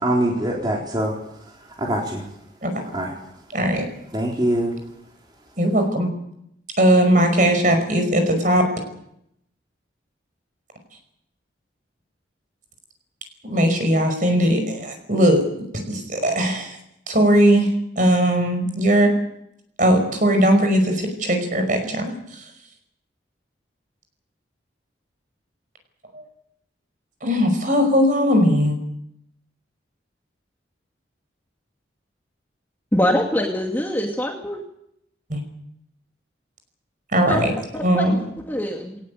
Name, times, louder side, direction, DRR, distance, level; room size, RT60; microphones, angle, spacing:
voice 1, 0.0-1.1 1.8-2.2 2.9-3.1 4.1-4.7, right 1 dB, 25° right, -2 dB, 3.9 m, -23 dB
voice 2, 3.5-3.9 5.6-6.1 6.8-8.6 13.4-15.4 15.9-16.8 17.1-17.7 18.0-19.1 19.8-22.1 26.1-26.2 27.2-28.8 35.3-35.4 37.1-37.5 37.8-38.2, equal, 45° right, 6 dB, 5.4 m, -19 dB
voice 3, 32.9-34.6 37.3-39.0, left 1 dB, 10° left, 1 dB, 2.3 m, -24 dB
20.0 x 19.0 x 8.5 m, 0.75 s
head